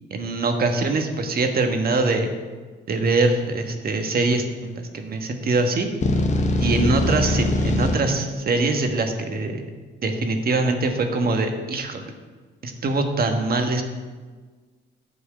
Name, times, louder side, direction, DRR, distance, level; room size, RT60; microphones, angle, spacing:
voice 1, 0.1-2.3 2.9-5.9 6.6-9.6 10.0-12.1 12.6-13.8, right 3 dB, 50° right, 5 dB, 1.4 m, -23 dB
sound 1, 6.0-8.0, left 2 dB, 35° left, 1.1 m, -21 dB
10.5 x 4.6 x 7.6 m, 1.4 s
cardioid pair, 90°, 20 cm